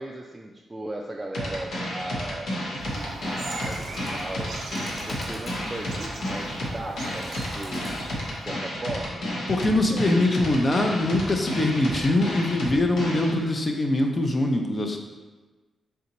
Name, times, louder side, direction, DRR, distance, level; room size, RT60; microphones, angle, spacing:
voice 1, 0.0-4.5 5.1-7.8 8.4-9.3 9.9-10.3, right 2 dB, 20° right, -1 dB, 0.3 m, -37 dB
sound 1, 1.3-13.3, equal, 80° left, 1.0 m, -31 dB
sound 2, 2.8-8.2, right 3 dB, 85° right, 0.5 m, -40 dB
Bird, 2.9-8.5, equal, ahead, 1.2 m, -44 dB
voice 2, 9.5-15.0, left 1 dB, 35° left, 3 dB, 0.5 m, -23 dB
3.4 x 2.7 x 4.0 m, 1.3 s
cardioid pair, 75°, 0 cm